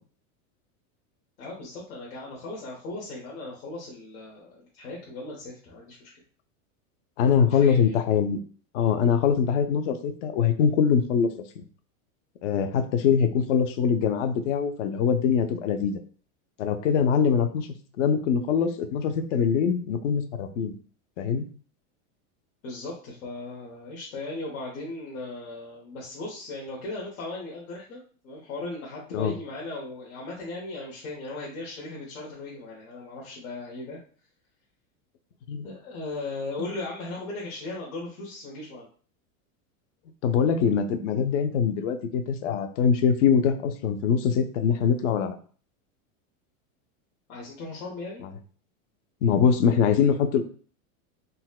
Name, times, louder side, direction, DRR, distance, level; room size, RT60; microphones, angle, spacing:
voice 1, 1.4-6.1 7.5-8.0 22.6-34.0 35.6-38.9 47.3-48.2, left 2 dB, 85° left, -4 dB, 1.1 m, -37 dB
voice 2, 7.2-8.4 8.7-11.3 11.6-11.7 12.4-16.0 16.6-17.7 18.0-20.8 21.2-21.4 29.1-29.3 35.5-35.7 40.2-45.4 49.2-50.4, left 7 dB, 60° left, 8 dB, 0.5 m, -23 dB
4.0 x 2.1 x 2.3 m, 0.42 s
supercardioid pair, 175°, 42 cm